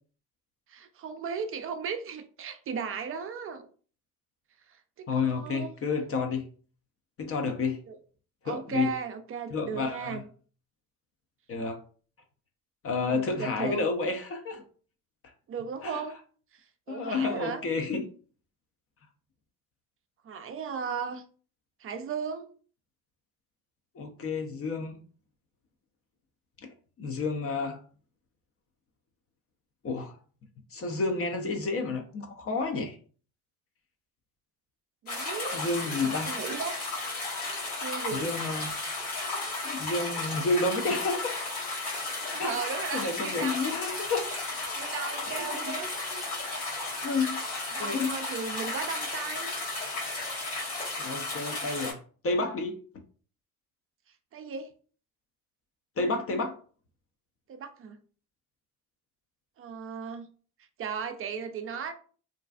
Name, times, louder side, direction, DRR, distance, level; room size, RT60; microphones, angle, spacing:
voice 1, 0.7-3.7 4.7-5.7 7.9-8.0 8.4-10.2 13.0-13.8 15.5-16.2 16.9-17.6 20.2-21.2 21.8-22.5 35.0-35.6 36.0-36.8 37.8-38.3 42.3-43.6 44.8-46.0 47.7-49.5 54.3-54.7 57.5-58.0 59.6-60.3 60.8-61.9, right 6 dB, 30° right, 0.4 m, -36 dB
voice 2, 5.1-6.4 7.2-7.8 8.4-8.9 9.5-10.2 11.5-11.8 12.8-14.6 15.8-16.0 16.9-18.1 23.9-25.0 27.0-27.8 29.8-30.2 30.7-33.0 35.5-36.4 38.1-38.7 39.6-41.3 42.4-44.3 45.3-45.8 47.0-47.4 47.8-48.2 51.0-52.8 56.0-56.6, left 3 dB, 35° left, 0.5 m, -30 dB
sound 1, 35.1-51.9, left 2 dB, 90° left, 1.2 m, -34 dB
2.5 x 2.3 x 2.3 m
hypercardioid pair, 55°, 43 cm